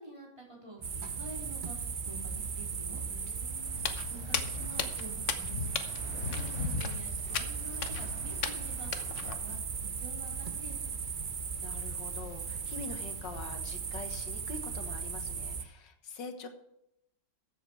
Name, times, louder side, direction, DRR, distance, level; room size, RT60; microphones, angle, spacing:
voice 1, 0.0-3.0 4.1-5.8 6.1-8.9 9.3-10.9, right 2 dB, 15° right, -3 dB, 4.0 m, -48 dB
sound 1, 0.8-15.6, right 6 dB, 45° right, 0.6 m, -37 dB
voice 2, 3.1-3.9 11.6-16.5, left 4 dB, 85° left, 7 dB, 2.0 m, -45 dB
sound 2, 3.6-9.5, equal, 5° left, 3.1 m, -54 dB
Walk footsteps, 3.7-9.3, left 6 dB, 50° left, 1.1 m, -36 dB
14.0 x 8.0 x 4.6 m, 0.82 s
omnidirectional pair, 1.9 m